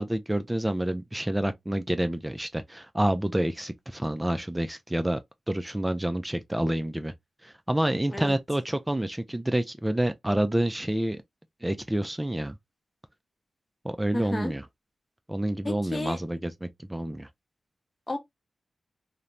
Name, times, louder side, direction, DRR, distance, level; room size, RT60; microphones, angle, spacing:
voice 1, 0.0-5.2 5.5-7.1 7.4-11.2 11.6-12.5 13.8-14.6 15.3-17.3, right 1 dB, 15° right, 0.3 m, -28 dB
voice 2, 14.1-14.5 15.6-16.2 18.1-18.2, left 2 dB, 30° left, 0.8 m, -32 dB
2.9 x 2.1 x 2.4 m
cardioid pair, 55°, 0 cm